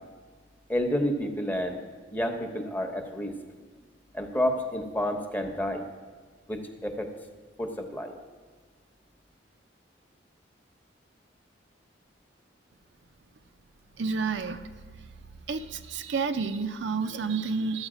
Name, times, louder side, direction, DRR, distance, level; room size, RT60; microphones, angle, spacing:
voice 1, 0.7-1.8 2.1-3.3 4.1-5.9 6.5-7.1 7.6-8.1, equal, 10° left, 5 dB, 0.9 m, -29 dB
voice 2, 14.0-14.7 15.5-17.9, right 4 dB, 70° right, 8 dB, 0.6 m, -30 dB
13.0 x 8.1 x 4.9 m, 1.5 s
head